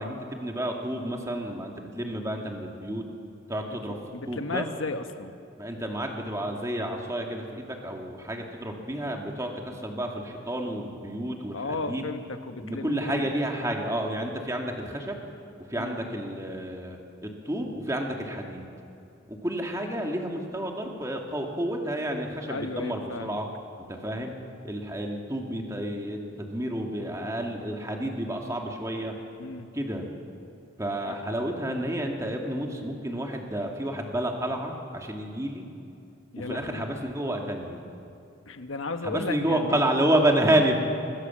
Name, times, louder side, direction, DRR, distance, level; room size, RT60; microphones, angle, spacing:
voice 1, 0.0-3.0 3.5-4.0 4.3-4.7 5.6-12.1 12.6-15.2 15.7-18.7 19.3-23.5 23.9-24.3 24.6-29.2 29.7-30.1 30.8-35.7 36.4-37.8 39.0-40.8, right 1 dB, 15° right, 1 dB, 2.3 m, -30 dB
voice 2, 3.9-5.4 11.5-13.3 15.8-16.0 22.5-23.4 29.4-29.7 31.1-31.2 36.3-36.9 38.5-39.8, left 3 dB, 80° left, 7 dB, 1.3 m, -34 dB
25.0 x 20.0 x 7.4 m, 2.6 s
head